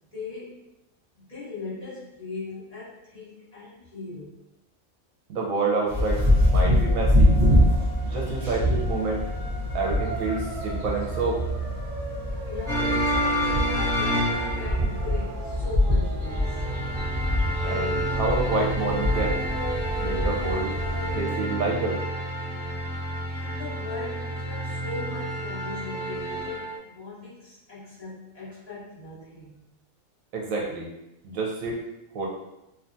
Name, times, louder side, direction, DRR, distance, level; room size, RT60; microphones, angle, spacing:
voice 1, 0.1-0.6 1.1-4.4 7.8-7.9 8.4-8.6 12.5-16.6 23.3-29.5, left 3 dB, 30° left, -12 dB, 1.1 m, -39 dB
voice 2, 5.3-7.3 8.0-9.2 9.7-11.4 17.6-19.4 20.0-20.7 21.1-22.0 30.3-30.9 31.2-31.8 32.1-32.3, right 3 dB, 75° right, -2 dB, 1.0 m, -28 dB
sound 1, 5.9-21.2, equal, 30° right, 0.7 m, -25 dB
sound 2, 12.7-15.1 16.2-26.8, equal, 15° left, 0.8 m, -29 dB
2.9 x 2.2 x 2.5 m, 0.87 s
omnidirectional pair, 1.5 m